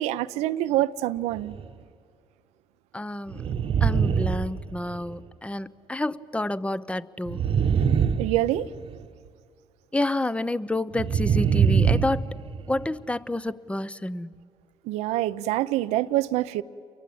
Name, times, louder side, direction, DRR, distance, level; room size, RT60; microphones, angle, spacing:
voice 1, 0.0-1.6 8.2-8.7 14.8-16.6, right 14 dB, 85° right, 0.8 m, -25 dB
sound 1, 1.3-1.7 3.3-5.2 7.2-9.0 10.9-12.9, right 7 dB, 60° right, 1.2 m, -24 dB
voice 2, 2.9-3.4 3.8-7.4 9.9-12.3 12.7-14.3, left 2 dB, 10° left, 0.9 m, -29 dB
29.0 x 23.5 x 8.8 m
supercardioid pair, 70°, 11 cm